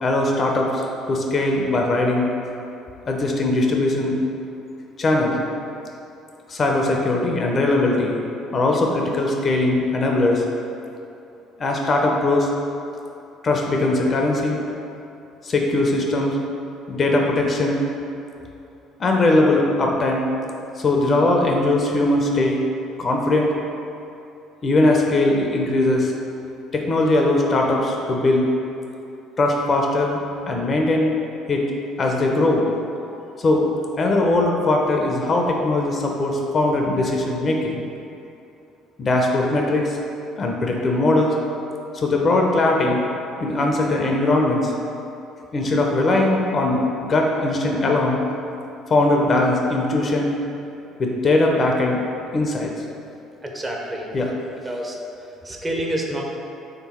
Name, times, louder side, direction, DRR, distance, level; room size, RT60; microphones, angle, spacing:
voice 1, 0.0-2.3 3.1-4.2 5.0-5.4 6.5-8.2 8.5-10.4 11.6-12.5 13.4-14.6 15.4-16.4 16.9-17.8 19.0-20.3 20.8-22.6 23.0-23.5 24.6-26.1 26.7-28.5 29.4-31.1 31.5-31.6 32.0-32.7 33.4-33.6 34.0-37.8 39.0-40.0 40.4-41.4 41.9-43.0 43.4-44.7 45.5-48.2 48.9-50.3 51.0-52.0 52.3-52.7 54.1-54.3, left 2 dB, 40° left, 0 dB, 0.5 m, -20 dB
voice 2, 53.4-54.1 54.6-55.0 55.4-56.2, right 1 dB, 20° right, -1 dB, 0.7 m, -28 dB
3.3 x 3.0 x 4.2 m, 2.7 s
hypercardioid pair, 60°, 0 cm